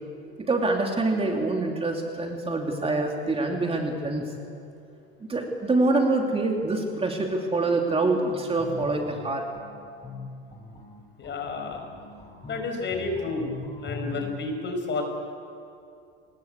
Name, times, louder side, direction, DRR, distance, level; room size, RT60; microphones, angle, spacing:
voice 1, 0.4-4.2 5.2-9.5, right 2 dB, 20° right, 1 dB, 2.8 m, -25 dB
sound 1, 8.6-14.3, left 3 dB, 15° left, 4.8 m, -41 dB
voice 2, 11.2-11.9 12.4-13.5 13.8-15.0, left 3 dB, 35° left, 4 dB, 6.0 m, -30 dB
25.0 x 20.0 x 8.3 m, 2.5 s
supercardioid pair, 105°, 31 cm